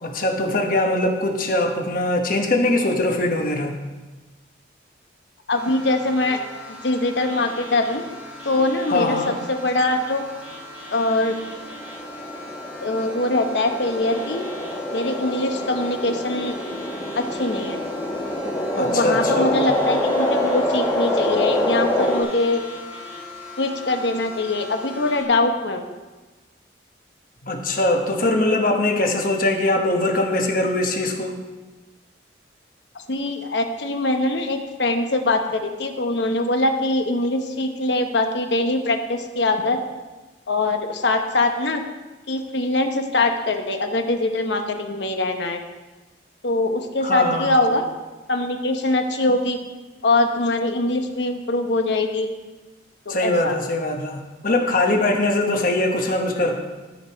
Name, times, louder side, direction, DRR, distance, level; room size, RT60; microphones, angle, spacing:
voice 1, 0.0-3.8 8.9-9.3 18.7-19.7 27.4-31.4 47.0-47.6 53.1-56.6, left 2 dB, 45° left, 3 dB, 1.1 m, -22 dB
voice 2, 5.5-6.4 6.8-8.0 8.4-10.2 10.9-11.3 12.8-14.4 14.9-16.6 17.2-17.8 18.8-22.6 23.6-25.9 32.9-39.8 40.5-41.8 42.3-45.6 46.4-47.9 48.3-49.6 50.0-52.3 53.1-53.5, left 2 dB, 70° left, 5 dB, 0.9 m, -22 dB
sound 1, 5.5-25.2, left 1 dB, 10° right, 1.4 m, -39 dB
sound 2, 11.4-22.2, left 1 dB, 15° left, 1.2 m, -25 dB
13.0 x 5.2 x 4.6 m, 1.2 s
head